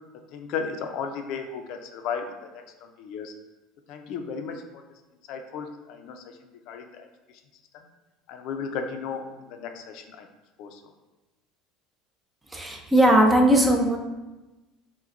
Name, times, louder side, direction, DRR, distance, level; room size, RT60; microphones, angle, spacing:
voice 1, 0.3-2.3 3.0-3.3 3.9-4.6 5.3-6.2 6.7-7.1 8.3-9.2 9.5-10.3 10.6-10.8, left 6 dB, 65° left, 5 dB, 0.4 m, -34 dB
voice 2, 12.5-14.0, right 1 dB, 15° right, 2 dB, 0.5 m, -19 dB
5.8 x 2.2 x 2.5 m, 1.1 s
supercardioid pair, 115°, 0 cm